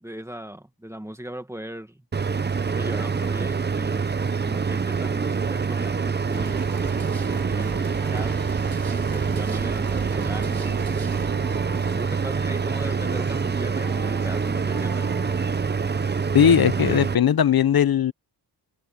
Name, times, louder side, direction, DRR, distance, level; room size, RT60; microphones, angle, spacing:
voice 1, 0.0-2.0 2.7-4.0 4.4-6.6 7.5-8.4 8.9-11.1 11.8-15.1, right 1 dB, 5° right, 1.5 m, -38 dB
sound 1, 2.1-17.1, right 5 dB, 25° right, 0.7 m, -25 dB
sound 2, 6.3-16.2, right 6 dB, 55° right, 6.5 m, -38 dB
voice 2, 16.3-18.1, left 8 dB, 60° left, 0.9 m, -18 dB
wide cardioid pair, 160°, 42 cm